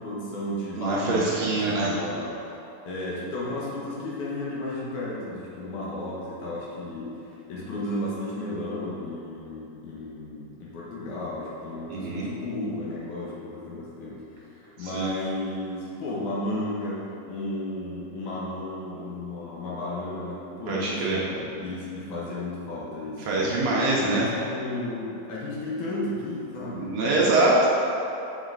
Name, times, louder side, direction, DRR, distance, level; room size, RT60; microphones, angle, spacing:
voice 1, 0.0-2.3 2.9-7.1 7.5-23.6 24.0-27.2, left 1 dB, 70° left, -6 dB, 2.5 m, -33 dB
voice 2, 0.8-2.0 11.9-12.3 14.8-15.1 20.7-21.2 23.2-24.3 26.8-27.7, right 2 dB, 70° right, -6 dB, 1.7 m, -24 dB
7.3 x 6.0 x 3.9 m, 2.9 s
omnidirectional pair, 4.0 m